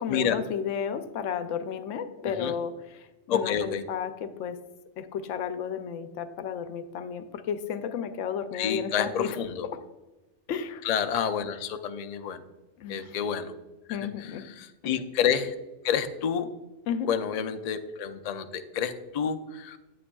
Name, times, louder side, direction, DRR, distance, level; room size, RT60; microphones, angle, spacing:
voice 1, 0.0-4.6 5.0-9.4 9.7-9.8 10.5-10.9 12.8-13.2 13.9-14.5 14.8-14.9 16.9-17.1, left 7 dB, 90° left, 10 dB, 0.9 m, -33 dB
voice 2, 2.2-2.5 3.3-3.8 8.5-9.7 10.8-12.4 12.9-13.5 13.9-14.0 14.6-15.5 15.8-16.5 17.1-19.8, left 8 dB, 60° left, 8 dB, 0.4 m, -29 dB
8.6 x 8.4 x 2.3 m, 1.1 s
omnidirectional pair, 1.2 m